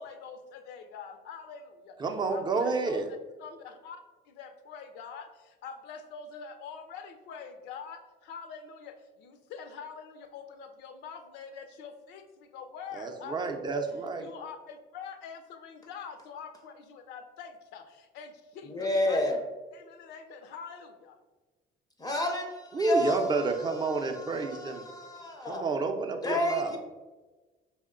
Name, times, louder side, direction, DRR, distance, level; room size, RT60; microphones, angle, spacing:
voice 1, 0.0-2.0 2.3-3.0 3.4-13.8 14.2-19.3 19.7-21.2, left 6 dB, 90° left, 7 dB, 0.5 m, -45 dB
voice 2, 2.0-3.1 12.9-14.3 22.7-24.8 25.5-26.8, right 3 dB, 25° right, 5 dB, 0.5 m, -30 dB
voice 3, 18.7-19.4 22.0-25.6 26.2-26.8, left 1 dB, 20° left, 3 dB, 0.5 m, -31 dB
5.1 x 2.1 x 3.6 m, 1.2 s
cardioid pair, 110°, 17 cm